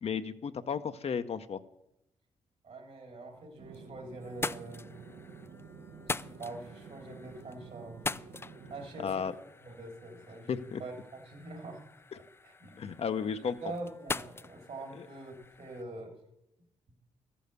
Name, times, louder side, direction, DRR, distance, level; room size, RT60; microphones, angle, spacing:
voice 1, 0.0-1.6 9.0-9.3 10.5-10.8 12.8-13.7 14.9-15.1, left 6 dB, 50° left, 10 dB, 0.6 m, -34 dB
voice 2, 2.6-4.9 6.1-8.2 8.7-9.4 9.6-10.5 10.8-10.9 11.3-11.8 12.4-12.8 13.6-16.1, right 2 dB, 60° right, 3 dB, 3.0 m, -44 dB
sound 1, 3.4-3.9 4.2-15.8, left 3 dB, 20° left, 0.3 m, -43 dB
sound 2, 3.6-8.9, right 5 dB, 85° right, 1.2 m, -50 dB
13.0 x 7.0 x 6.6 m, 0.85 s
supercardioid pair, 55°, 13 cm